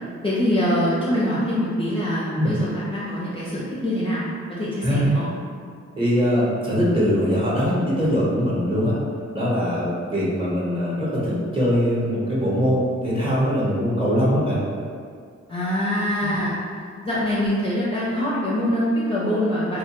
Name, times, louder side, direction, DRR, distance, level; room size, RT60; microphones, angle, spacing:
voice 1, 0.2-4.2 4.5-5.3 15.5-16.6 17.0-19.8, equal, 20° left, -9 dB, 0.5 m, -24 dB
voice 2, 6.0-8.9 9.3-14.6 16.2-16.4, equal, 20° right, -7 dB, 0.8 m, -22 dB
2.2 x 2.1 x 2.9 m, 2.1 s
cardioid pair, 65°, 29 cm